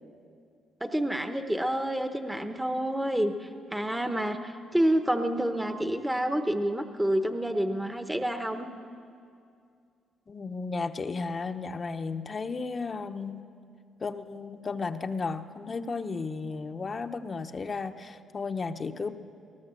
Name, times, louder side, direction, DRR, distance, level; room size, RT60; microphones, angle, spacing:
voice 1, 0.8-8.7, right 1 dB, 10° right, 7 dB, 1.0 m, -28 dB
voice 2, 10.3-13.5 14.0-19.1, left 4 dB, 35° left, 7 dB, 1.0 m, -34 dB
20.5 x 18.5 x 7.6 m, 2.4 s
cardioid pair, 90°, 0 cm